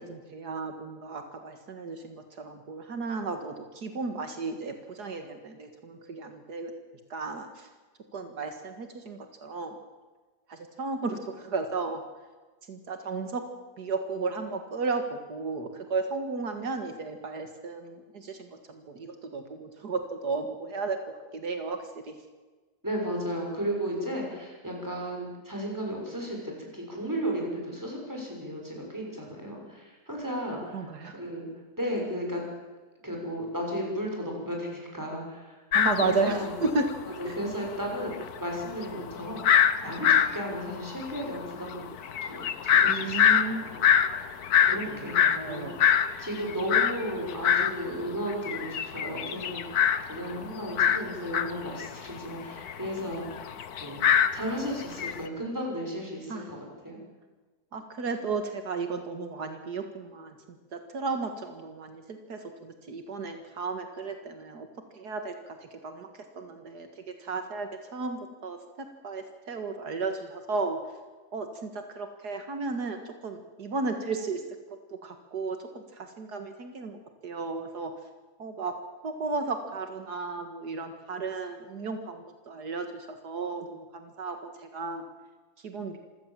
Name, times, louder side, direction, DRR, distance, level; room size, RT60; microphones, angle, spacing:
voice 1, 0.1-6.7 7.1-7.7 8.1-9.8 10.5-12.0 12.7-13.4 13.8-22.1 30.7-31.2 35.7-36.9 37.3-37.4 42.9-44.0 44.6-45.8 56.3-56.5 57.7-60.3 60.7-64.7 64.9-70.8 71.3-74.4 74.9-77.9 78.4-78.8 79.0-85.0 85.6-86.0, right 4 dB, 75° right, 6 dB, 2.3 m, -34 dB
voice 2, 22.8-31.4 31.8-32.4 33.0-35.5 36.0-36.5 37.0-38.1 38.4-41.8 42.2-43.9 44.6-54.0 54.3-56.6 56.8-57.0, equal, 10° right, 0 dB, 6.5 m, -34 dB
sound 1, 35.7-36.9 37.2-37.3 37.5-47.8 48.1-55.2, left 8 dB, 70° left, 1.6 m, -25 dB
26.5 x 16.5 x 7.6 m, 1.3 s
omnidirectional pair, 1.7 m